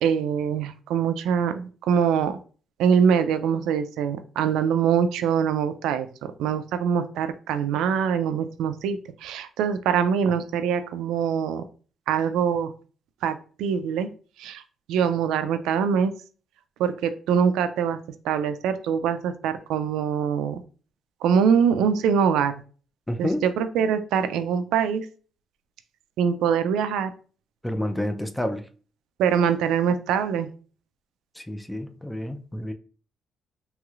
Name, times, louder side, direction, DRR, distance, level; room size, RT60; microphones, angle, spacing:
voice 1, 0.0-2.3 2.8-6.1 6.4-11.6 12.1-12.7 13.2-14.1 14.4-14.6 14.9-16.1 16.8-18.0 18.2-20.6 21.2-22.5 23.2-25.1 26.2-27.1 29.2-30.5, right 7 dB, 90° right, 0.3 m, -23 dB
voice 2, 23.1-23.4 27.6-28.7 31.4-32.7, left 1 dB, 5° left, 0.4 m, -29 dB
3.0 x 3.0 x 2.4 m
cardioid pair, 90°, 0 cm